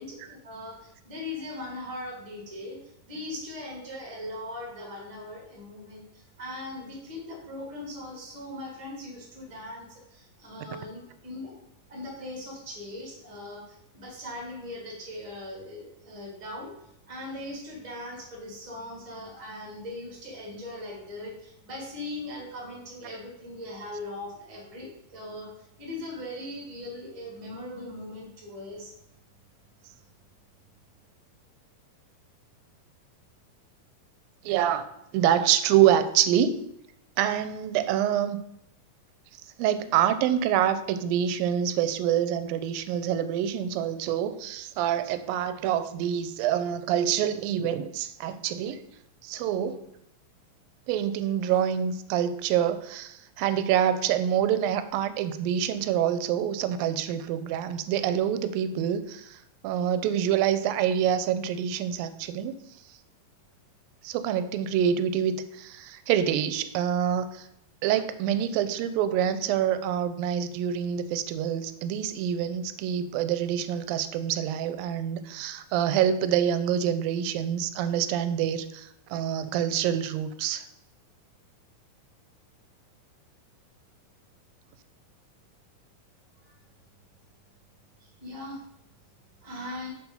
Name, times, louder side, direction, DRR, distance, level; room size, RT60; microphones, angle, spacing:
voice 1, 0.0-11.6 11.9-28.9 29.8-29.9 86.4-86.5 88.0-88.6 89.4-89.9, left 1 dB, 15° right, -1 dB, 1.4 m, -40 dB
voice 2, 34.4-34.9 35.1-36.7 37.2-38.4 39.6-48.8 49.2-49.9 50.9-62.5 64.0-67.5 67.8-80.7, right 9 dB, 90° right, 12 dB, 2.3 m, -26 dB
6.8 x 4.7 x 5.4 m, 0.79 s
omnidirectional pair, 4.0 m